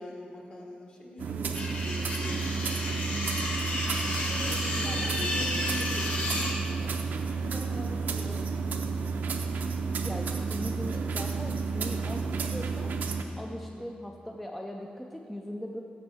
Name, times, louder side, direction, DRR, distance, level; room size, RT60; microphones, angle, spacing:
voice 1, 0.0-3.6 4.3-6.9 7.4-8.9 13.6-13.9, left 1 dB, 40° left, -1 dB, 1.2 m, -44 dB
sound 1, 1.2-13.2, right 5 dB, 65° right, 0.5 m, -31 dB
sound 2, 1.5-6.6, left 2 dB, 55° left, 1.1 m, -32 dB
voice 2, 4.8-5.5 10.0-12.9 13.4-15.8, equal, 5° left, 1 dB, 0.4 m, -40 dB
14.0 x 6.0 x 3.4 m, 2.5 s
wide cardioid pair, 180°, 3 cm